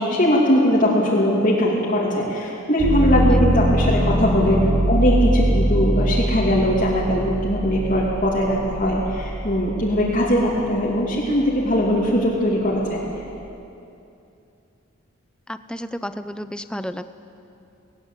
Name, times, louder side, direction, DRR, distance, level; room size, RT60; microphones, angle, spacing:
voice 1, 0.0-4.6 4.9-13.0, equal, 40° left, -6 dB, 2.8 m, -20 dB
sound 1, 2.8-10.6 11.1-11.9, right 1 dB, 30° right, 3.5 m, -22 dB
voice 2, 15.5-17.1, equal, 5° left, 11 dB, 0.5 m, -31 dB
19.0 x 18.5 x 8.2 m, 2.7 s
head